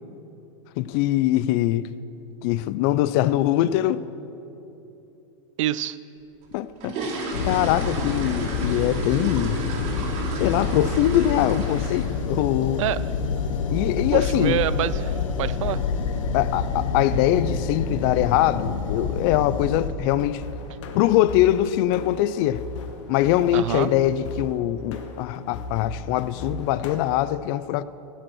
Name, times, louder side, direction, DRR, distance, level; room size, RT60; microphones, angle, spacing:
voice 1, 0.8-1.9 2.4-4.1 6.5-7.0 7.4-9.6 10.4-12.8 13.7-14.7 16.3-20.4 20.9-22.6 23.1-27.8, left 13 dB, 50° left, 0.4 m, -22 dB
voice 2, 5.6-6.0 12.8-13.0 14.1-15.8 23.5-23.9, right 13 dB, 75° right, 0.5 m, -26 dB
sound 1, 6.4-12.3 12.6-12.9 13.3-13.4 13.7-13.9 14.2-14.5 14.7-14.8 15.4-15.5 15.8-15.9 16.4-16.7 17.0-17.1 17.5-17.7 18.0-18.1 18.6-18.7 19.3-19.6 19.9-20.2 20.6-20.7 21.1-21.2 22.0-22.1 22.5-23.0 23.5-23.6, right 3 dB, 45° right, 2.2 m, -33 dB
sound 2, 7.3-19.9, left 5 dB, 85° left, 1.0 m, -27 dB
sound 3, 20.1-27.0, left 3 dB, 70° left, 1.2 m, -37 dB
15.5 x 7.9 x 6.3 m
supercardioid pair, 140°, 16 cm